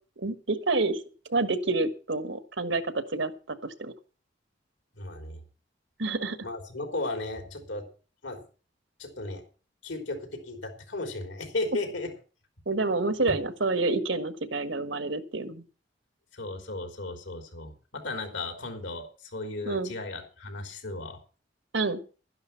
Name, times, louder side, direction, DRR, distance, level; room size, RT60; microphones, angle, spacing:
voice 1, 0.2-1.0 1.3-3.9 6.0-6.4 12.7-15.6 19.7-19.9 21.7-22.0, right 3 dB, 85° right, 11 dB, 1.5 m, -28 dB
voice 2, 4.9-5.4 6.4-7.9 8.2-8.4 9.0-9.4 9.8-12.1 13.3-13.4 16.3-21.2, left 2 dB, 90° left, 5 dB, 3.6 m, -35 dB
12.0 x 11.0 x 5.7 m, 0.36 s
head